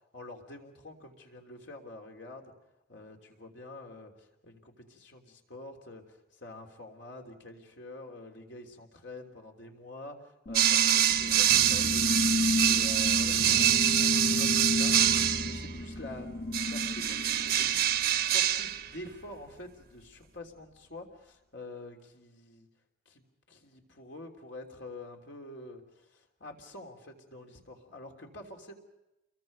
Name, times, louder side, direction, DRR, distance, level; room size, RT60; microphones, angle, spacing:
voice 1, 0.1-2.5 2.9-22.7 23.0-28.7, left 2 dB, 70° left, 2 dB, 3.3 m, -47 dB
sound 1, 10.5-18.2, left 2 dB, 55° left, 1.7 m, -32 dB
sound 2, 10.5-15.7 16.5-18.9, right 11 dB, 50° right, 1.0 m, -25 dB
28.5 x 22.5 x 5.4 m, 0.95 s
head